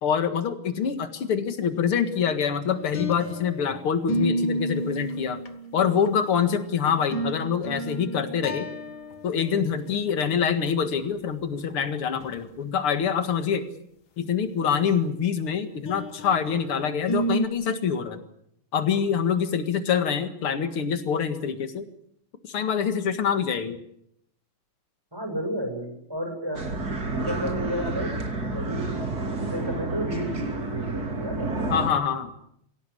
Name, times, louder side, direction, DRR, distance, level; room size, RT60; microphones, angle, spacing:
voice 1, 0.0-5.4 5.7-8.7 9.2-13.6 14.2-18.2 18.7-21.8 22.5-23.8 31.7-32.3, left 7 dB, 90° left, 9 dB, 2.7 m, -25 dB
sound 1, 2.8-3.7 4.1-6.3 6.9-9.3 9.6-9.7 10.1-10.2 11.7-11.8 12.2-12.3 15.9-16.6 17.1-17.5, right 1 dB, 65° left, 2.5 m, -30 dB
voice 2, 25.1-28.9 29.3-31.5, equal, 10° right, 3 dB, 6.9 m, -33 dB
sound 2, 26.6-31.9, right 2 dB, 45° right, 3.5 m, -30 dB
24.0 x 17.0 x 9.9 m, 0.76 s
omnidirectional pair, 2.3 m